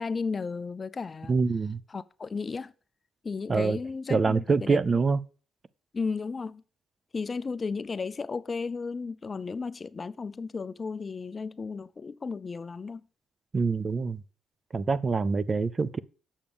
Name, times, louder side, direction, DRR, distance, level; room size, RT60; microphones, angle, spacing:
voice 1, 0.0-1.4 1.9-2.7 3.2-4.8 5.9-6.6 7.1-13.0, left 4 dB, 35° left, 0.4 m, -34 dB
voice 2, 1.3-1.8 3.5-3.8 4.1-5.2 13.5-14.2 14.7-16.0, right 4 dB, 35° right, 0.5 m, -25 dB
7.1 x 5.2 x 6.9 m
cardioid pair, 90°, 0 cm